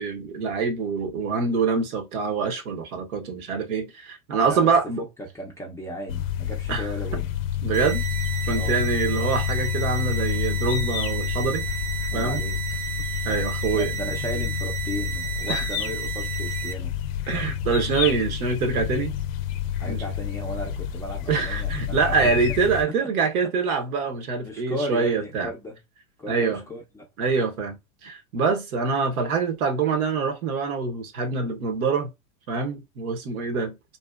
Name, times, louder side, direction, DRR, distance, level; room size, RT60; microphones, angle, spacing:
voice 1, 0.0-5.0 6.7-6.9 7.6-8.0 8.5-11.6 12.1-12.4 13.2-13.9 15.5-15.6 17.3-19.2 19.8-20.0 21.3-25.5 26.3-26.6 27.2-27.8 28.0-32.1 32.5-33.8, right 5 dB, 75° right, 0.9 m, -25 dB
voice 2, 4.4-4.7 5.3-7.3 8.6-8.8 12.1-12.6 13.7-16.9 19.8-22.4 23.0-23.1 24.4-25.8 26.2-27.1, equal, 5° left, 0.4 m, -35 dB
sound 1, 6.1-22.8, left 10 dB, 65° left, 0.5 m, -29 dB
sound 2, 7.7-16.7, right 9 dB, 45° right, 0.6 m, -33 dB
2.7 x 2.0 x 2.3 m
hypercardioid pair, 110°, 43 cm